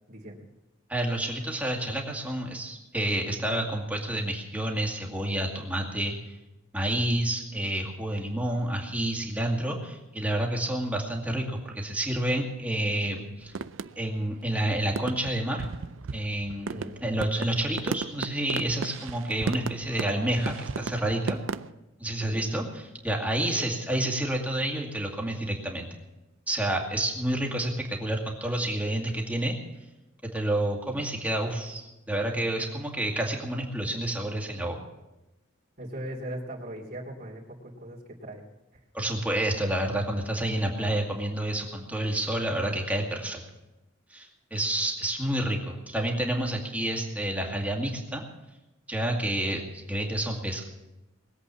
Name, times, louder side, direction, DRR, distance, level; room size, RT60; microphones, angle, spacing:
voice 1, 0.1-0.4 16.7-17.0 22.2-22.6 23.4-23.7 35.8-38.4, right 1 dB, 45° right, -1 dB, 2.9 m, -39 dB
voice 2, 0.9-6.1 6.7-13.5 14.0-15.7 16.1-21.4 22.0-22.6 23.0-25.9 26.5-29.5 30.2-34.8 38.9-43.4 44.1-48.2 48.9-50.7, right 1 dB, 10° right, 0 dB, 2.2 m, -29 dB
sound 1, 13.5-14.3 14.6-14.7 14.9-21.7, right 5 dB, 65° right, 0.5 m, -35 dB
21.0 x 8.2 x 7.3 m, 0.99 s
head